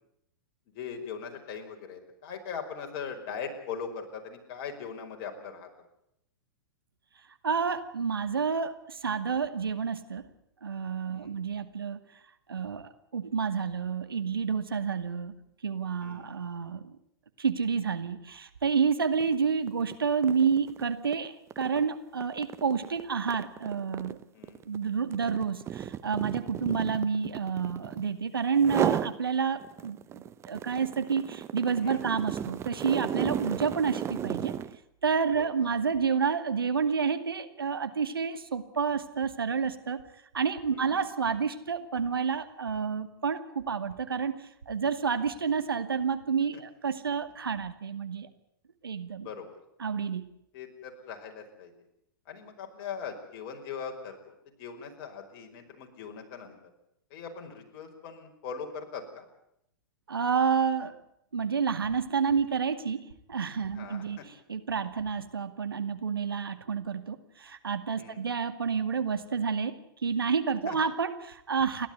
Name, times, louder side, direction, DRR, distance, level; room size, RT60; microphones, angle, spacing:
voice 1, 0.7-5.7 11.1-11.4 16.0-16.3 24.3-24.6 31.8-32.2 35.6-35.7 40.7-41.0 49.2-49.5 50.5-51.7 52.3-56.6 57.1-59.3 63.7-64.2 67.9-68.2 70.7-70.8, left 6 dB, 45° left, 4 dB, 5.3 m, -40 dB
voice 2, 7.4-10.2 10.6-12.0 12.5-15.3 15.6-16.8 17.4-24.2 24.7-34.5 35.0-40.1 40.3-48.3 48.8-49.3 49.8-50.3 60.1-61.0 61.3-71.9, right 6 dB, 80° right, 9 dB, 2.2 m, -29 dB
sound 1, 19.1-19.3 19.7-28.1 28.6-29.2 29.6-34.8, right 9 dB, 25° right, 0.9 m, -34 dB
30.0 x 12.5 x 9.6 m, 0.78 s
figure-of-eight pair, 110°, 12 cm